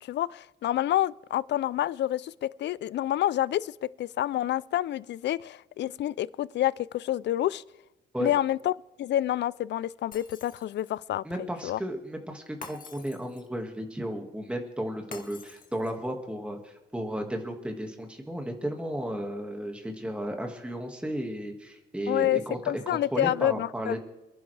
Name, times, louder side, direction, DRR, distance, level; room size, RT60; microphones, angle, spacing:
voice 1, 0.0-3.7 4.0-7.6 8.2-8.7 9.0-11.2 11.6-11.8 22.1-22.4 22.7-24.0, left 12 dB, 60° left, 0.5 m, -28 dB
Shatter, 10.1-11.1 12.6-13.6 15.1-16.1, left 5 dB, 45° left, 2.0 m, -47 dB
voice 2, 11.2-24.0, equal, 5° right, 1.9 m, -34 dB
28.0 x 10.5 x 3.4 m
cardioid pair, 90°, 20 cm